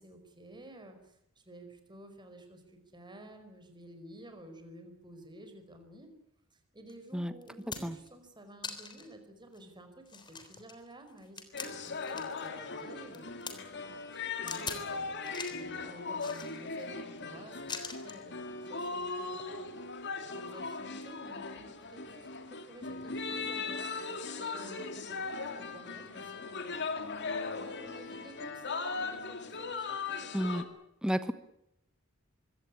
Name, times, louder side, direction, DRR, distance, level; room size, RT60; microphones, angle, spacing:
voice 1, 0.0-6.1 6.5-13.3 14.1-19.7 20.3-23.8 24.4-26.8 27.6-30.4, right 1 dB, 20° right, 6 dB, 4.9 m, -52 dB
sound 1, 6.9-7.0 7.4-8.1 8.6-9.1 9.5-9.6 10.1-12.5 12.8-13.5 14.5-14.9 15.2-15.7 16.2-16.9 17.7-18.2 19.3-19.5, left 5 dB, 20° left, 3.5 m, -42 dB
sound 2, 11.5-30.6, left 4 dB, 55° left, 2.7 m, -39 dB
voice 2, 30.3-30.6 31.0-31.3, equal, 5° right, 11 dB, 1.1 m, -31 dB
24.5 x 17.0 x 9.9 m, 0.80 s
head